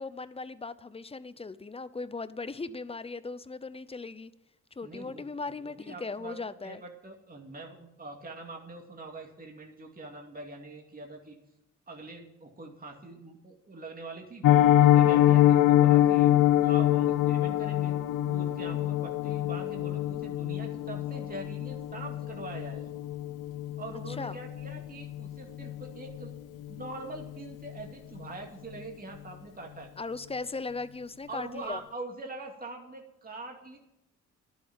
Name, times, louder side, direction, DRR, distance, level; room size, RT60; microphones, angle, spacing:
voice 1, 0.0-4.3 4.8-6.8 24.1-24.4 30.0-31.8, left 3 dB, 20° left, 0.7 m, -38 dB
voice 2, 4.8-5.2 5.6-6.4 6.6-11.4 11.9-14.5 14.8-16.3 16.6-17.9 18.3-22.9 23.8-26.3 26.7-29.9 31.3-33.8, right 2 dB, 30° right, 2.4 m, -43 dB
Piano, 14.4-25.3 25.6-25.8 26.1-26.3 26.6-26.9 27.2-27.3, left 13 dB, 80° left, 0.7 m, -24 dB
11.5 x 7.3 x 9.2 m
cardioid pair, 80°, 31 cm